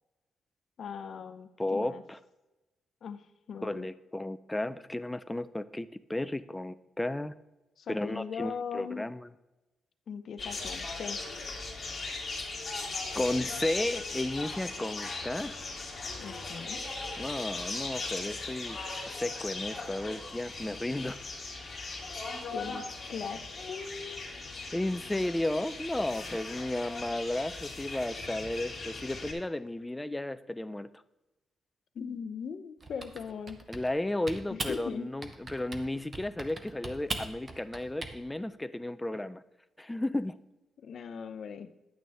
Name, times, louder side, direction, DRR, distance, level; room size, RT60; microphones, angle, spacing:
voice 1, 0.8-2.0 3.0-3.2 3.5-3.9 7.8-9.1 10.1-11.2 16.2-16.8 22.5-22.8 23.1-23.4 23.7-24.3 31.9-33.6 34.5-35.1 40.8-41.7, left 6 dB, 50° left, 11 dB, 0.6 m, -39 dB
voice 2, 1.6-2.2 3.6-7.3 7.9-9.3 13.1-15.5 17.2-18.8 19.1-21.2 24.7-30.9 33.7-39.4 39.8-40.4, left 1 dB, 5° left, 13 dB, 0.3 m, -33 dB
sound 1, 10.4-29.3, left 3 dB, 25° left, 2.3 m, -38 dB
Typing, 32.8-34.0 34.3-34.8 35.2-35.9 36.1-38.1, right 2 dB, 20° right, 0.8 m, -39 dB
10.5 x 8.8 x 3.4 m, 1.0 s
wide cardioid pair, 180°, 0 cm